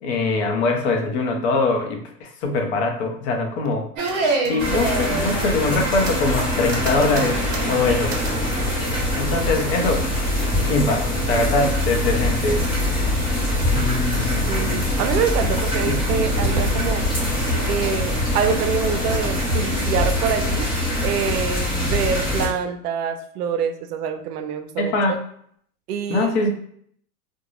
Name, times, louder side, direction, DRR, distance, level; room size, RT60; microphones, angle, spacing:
voice 1, 0.0-3.9 4.5-7.4 7.7-8.1 9.2-10.1 10.6-12.6 13.7-14.9 15.8-16.0 24.8-25.2 26.1-26.5, left 3 dB, 45° left, 3 dB, 0.6 m, -22 dB
sound 1, 4.0-8.4 8.6-9.2 9.8-10.0 10.3-10.7 11.2-11.8 12.4-13.0, right 3 dB, 55° right, 0.9 m, -28 dB
sound 2, 4.6-22.5, left 1 dB, 10° left, 0.9 m, -23 dB
Bowed string instrument, 6.7-11.3 11.7-11.8, left 1 dB, 20° right, 0.7 m, -40 dB
voice 2, 14.5-17.1 17.7-20.7 21.0-25.2 25.9-26.3, right 7 dB, 75° right, 8 dB, 0.6 m, -25 dB
2.5 x 2.2 x 3.0 m, 0.64 s
supercardioid pair, 145°, 47 cm